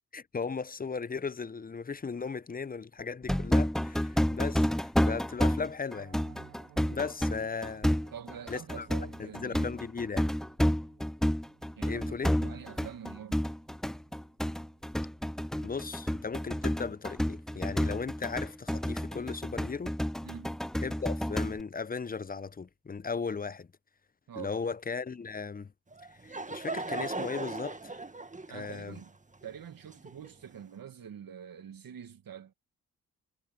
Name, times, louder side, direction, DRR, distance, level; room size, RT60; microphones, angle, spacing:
voice 1, 0.1-6.2 6.9-8.0 8.5-8.9 9.2-10.3 11.9-12.4 15.6-20.0 20.8-23.7 24.4-25.7 26.2-27.9 28.5-29.0, left 5 dB, 25° left, 0.7 m, -37 dB
sound 1, 3.3-21.6, equal, ahead, 0.4 m, -30 dB
Piano, 5.9-16.8 17.1-17.3 17.6-17.8 18.2-18.4 18.7-18.8, right 16 dB, 90° right, 4.4 m, -61 dB
voice 2, 8.1-9.7 11.8-13.5 20.2-20.6 24.3-24.5 28.5-29.1 29.4-32.5, right 8 dB, 65° right, 2.1 m, -45 dB
Laughter / Crowd, 25.9-30.6, right 3 dB, 20° right, 1.8 m, -39 dB
hypercardioid pair, 40°, 37 cm